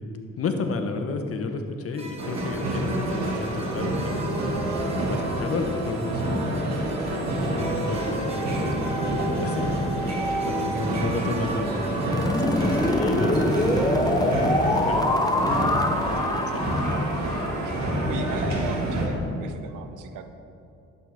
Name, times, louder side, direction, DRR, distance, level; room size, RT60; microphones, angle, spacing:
voice 1, 0.4-4.3 5.1-10.1 10.4-11.7 12.3-13.7 14.3-14.5 14.8-16.2 16.5-16.6, left 4 dB, 50° left, 6 dB, 1.0 m, -32 dB
sound 1, 1.9-13.2, right 2 dB, 20° right, 1.3 m, -36 dB
sound 2, 2.2-19.1, right 1 dB, 65° right, 1.9 m, -28 dB
voice 2, 4.9-5.5 10.7-11.2 12.7-13.0 17.6-17.8 18.1-20.2, right 6 dB, 90° right, 8 dB, 0.8 m, -38 dB
sound 3, 12.1-18.0, left 1 dB, 15° left, 0.7 m, -25 dB
11.5 x 7.9 x 3.5 m, 2.8 s
cardioid pair, 90°, 30 cm